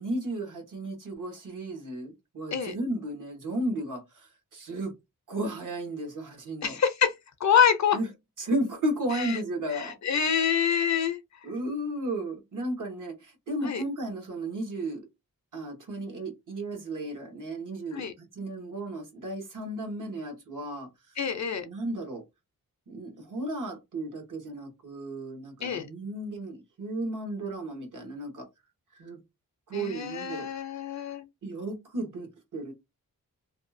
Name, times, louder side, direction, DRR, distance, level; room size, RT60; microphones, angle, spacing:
voice 1, 0.0-4.9 5.3-6.8 7.9-8.1 8.4-9.9 11.4-15.1 15.5-21.2 21.6-22.2 22.9-28.5 29.0-29.2 29.7-30.5 31.4-32.7, right 1 dB, 60° right, 1.1 m, -34 dB
voice 2, 6.6-7.1 7.4-8.0 9.2-9.3 9.7-11.2 13.6-13.8 17.9-18.1 21.2-21.7 25.6-25.9 29.7-31.2, left 7 dB, 50° left, 0.5 m, -26 dB
2.7 x 2.3 x 2.6 m
wide cardioid pair, 115°, 35 cm